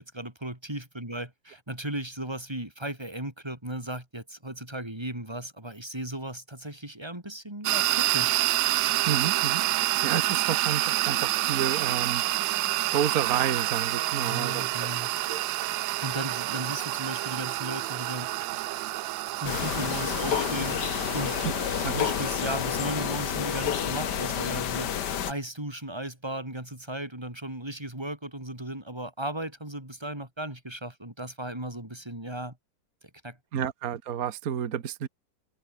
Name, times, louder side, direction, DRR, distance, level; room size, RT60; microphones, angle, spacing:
voice 1, 0.0-8.4 14.2-15.1 16.0-18.3 19.4-20.8 21.1-21.4 21.8-24.9 25.3-32.6 33.0-33.4, right 1 dB, 15° right, 4.9 m, -36 dB
sound 1, 7.6-24.3, right 17 dB, 90° right, 1.3 m, -29 dB
voice 2, 9.1-12.2 12.9-14.6 15.0-15.4 21.4-21.5 21.8-22.0 33.5-35.1, right 9 dB, 55° right, 1.7 m, -30 dB
sound 2, 19.4-25.3, left 9 dB, 65° left, 1.8 m, -29 dB
omnidirectional pair, 2.0 m